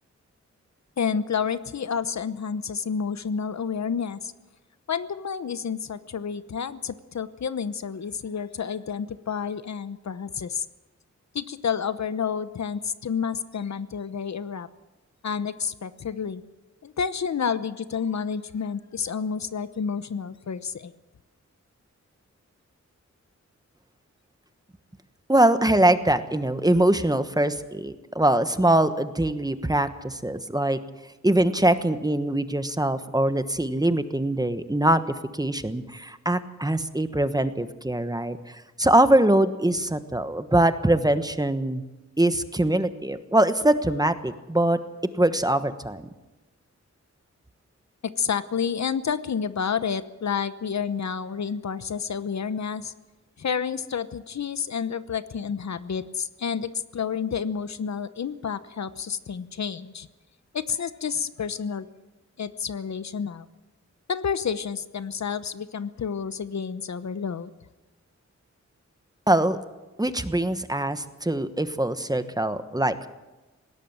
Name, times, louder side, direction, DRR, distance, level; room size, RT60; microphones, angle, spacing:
voice 1, 1.0-4.3 4.9-10.6 11.3-14.7 15.2-16.4 16.8-20.9 48.0-52.9 53.4-60.1 60.5-61.9 62.4-63.5 64.1-67.5, left 6 dB, 70° left, 13 dB, 0.9 m, -30 dB
voice 2, 25.3-30.8 31.2-35.0 35.3-41.8 42.2-44.8 45.2-46.1 69.3-69.6 70.0-73.1, right 1 dB, 15° right, 10 dB, 1.2 m, -23 dB
20.5 x 17.5 x 7.3 m, 1.1 s
wide cardioid pair, 100°, 29 cm